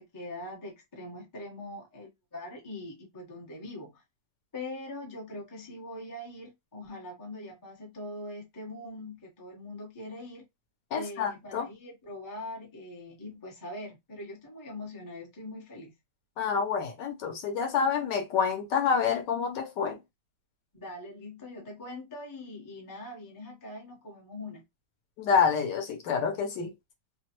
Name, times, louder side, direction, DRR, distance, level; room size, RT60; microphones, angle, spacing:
voice 1, 0.0-4.0 4.5-10.4 10.9-15.9 20.7-24.6, left 1 dB, 20° left, 0.5 m, -42 dB
voice 2, 10.9-11.7 16.4-20.0 25.2-26.7, left 6 dB, 70° left, 1.2 m, -28 dB
3.1 x 2.1 x 2.9 m
omnidirectional pair, 2.1 m